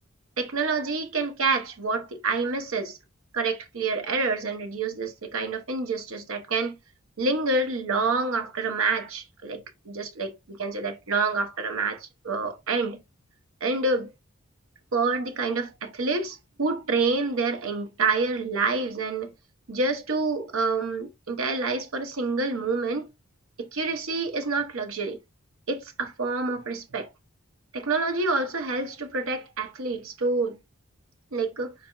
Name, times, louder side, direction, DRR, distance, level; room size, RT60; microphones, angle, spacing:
voice 1, 0.4-3.0 3.3-6.8 7.2-13.0 13.6-14.1 14.9-19.3 19.7-23.1 23.6-25.2 25.7-27.1 27.7-30.6 31.3-31.7, right 3 dB, 75° right, 0.8 m, -27 dB
4.1 x 4.1 x 2.3 m
head